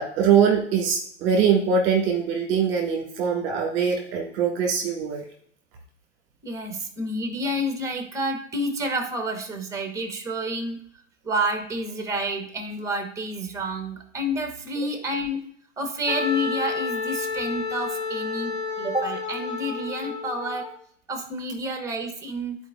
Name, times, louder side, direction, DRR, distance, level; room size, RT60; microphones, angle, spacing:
voice 1, 0.0-5.2, right 6 dB, 30° right, -1 dB, 1.6 m, -22 dB
voice 2, 6.4-10.8 11.2-15.4 15.8-20.7 21.1-22.6, equal, 10° right, 6 dB, 0.9 m, -29 dB
Wind instrument woodwind instrument, 16.1-20.7, left 5 dB, 60° left, 1.6 m, -30 dB
12.5 x 4.4 x 2.3 m, 0.63 s
figure-of-eight pair, 110°, 37 cm